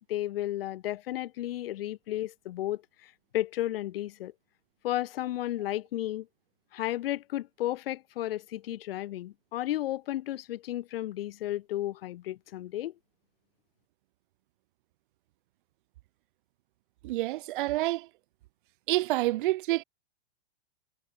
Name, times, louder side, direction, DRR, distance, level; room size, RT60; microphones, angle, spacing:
voice 1, 0.1-4.3 4.8-6.3 6.7-12.9, left 14 dB, 60° left, 7.8 m, -33 dB
voice 2, 17.0-18.1 18.9-19.8, right 17 dB, 50° right, 6.4 m, -28 dB
supercardioid pair, 160°, 33 cm